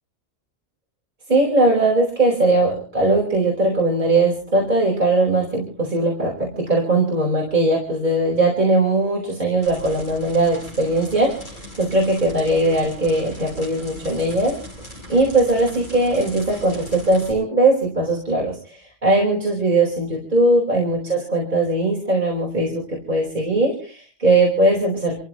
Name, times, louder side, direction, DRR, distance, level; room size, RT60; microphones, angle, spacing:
voice 1, 1.3-14.6 15.1-25.2, right 2 dB, 35° right, -3 dB, 5.1 m, -20 dB
sound 1, 9.6-17.3, equal, 40° left, 8.0 m, -39 dB
29.5 x 15.5 x 3.1 m, 0.40 s
omnidirectional pair, 1.3 m